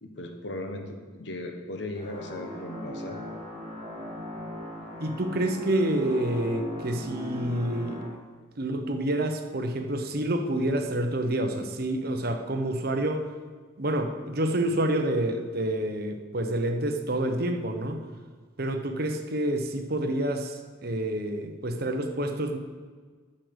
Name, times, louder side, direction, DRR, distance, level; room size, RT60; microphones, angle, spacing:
voice 1, 0.0-3.2, left 1 dB, 60° left, 5 dB, 1.2 m, -37 dB
sound 1, 1.9-8.1, left 1 dB, 25° right, 2.7 m, -39 dB
voice 2, 5.0-8.1 8.6-13.3 13.8-18.0 18.6-22.6, right 1 dB, 50° right, 5 dB, 0.9 m, -28 dB
8.6 x 6.5 x 7.9 m, 1.5 s
head